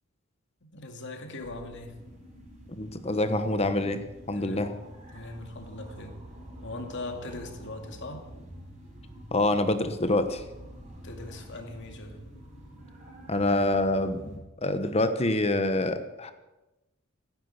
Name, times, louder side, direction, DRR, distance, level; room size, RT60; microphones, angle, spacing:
voice 1, 0.6-2.0 4.3-4.7 5.1-6.2 6.6-8.3 11.0-12.2, left 2 dB, 55° left, 4 dB, 2.5 m, -40 dB
sound 1, 1.4-14.4, equal, 35° right, 5.5 m, -47 dB
voice 2, 2.7-4.0 4.3-4.7 9.3-10.4 13.3-16.3, left 2 dB, 30° left, 9 dB, 1.1 m, -26 dB
15.5 x 10.5 x 8.1 m, 1.0 s
head